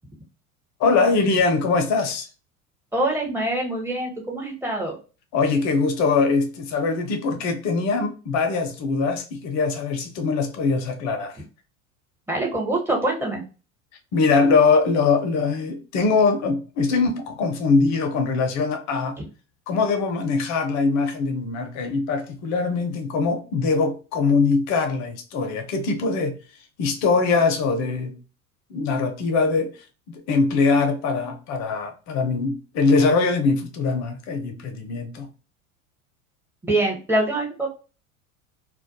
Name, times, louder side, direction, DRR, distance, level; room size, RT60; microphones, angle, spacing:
voice 1, 0.8-2.3 5.3-11.3 14.1-19.2 19.7-26.4 26.8-28.1 28.7-29.8 30.1-35.3, left 4 dB, 40° left, 0.6 m, -22 dB
voice 2, 2.9-5.0 12.3-13.4 36.6-37.7, right 1 dB, 5° right, 0.8 m, -24 dB
2.2 x 2.2 x 2.6 m
hypercardioid pair, 80°, 43 cm